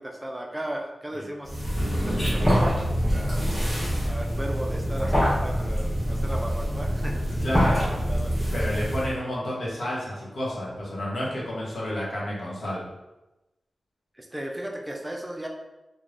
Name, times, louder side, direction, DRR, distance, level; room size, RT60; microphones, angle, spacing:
voice 1, 0.0-1.7 2.0-3.4 4.1-8.3 14.1-15.5, right 1 dB, 10° right, 0 dB, 0.3 m, -36 dB
sound 1, 1.5-9.2, equal, 5° left, 1.2 m, -25 dB
voice 2, 7.4-7.9 8.5-12.8, equal, 65° left, -6 dB, 0.9 m, -30 dB
3.3 x 2.1 x 2.4 m, 1.0 s
wide cardioid pair, 160°, 0 cm